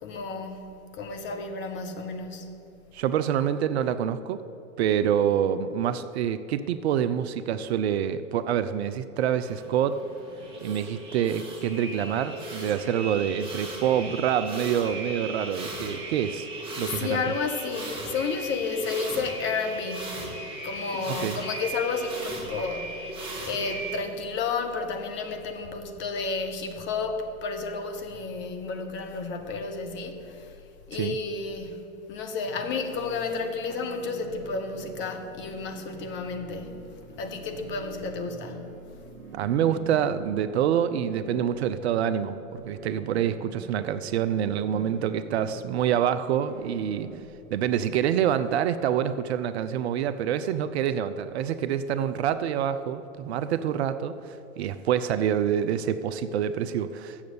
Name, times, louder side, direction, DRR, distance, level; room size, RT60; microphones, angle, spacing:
voice 1, 0.0-2.5 4.9-5.1 16.8-20.3 20.6-23.0 23.4-30.6 30.9-36.8 37.1-38.7 52.0-52.1, left 4 dB, 25° left, 1.1 m, -32 dB
voice 2, 2.9-4.4 4.8-10.0 10.6-16.5 16.8-17.3 21.1-21.4 30.9-31.2 39.3-47.1 47.5-57.2, right 9 dB, 50° right, 0.5 m, -26 dB
sound 1, 9.2-24.0, right 2 dB, 15° right, 2.1 m, -37 dB
sound 2, 32.5-47.3, right 5 dB, 75° right, 1.1 m, -45 dB
7.6 x 7.2 x 8.3 m
hypercardioid pair, 105°, 41 cm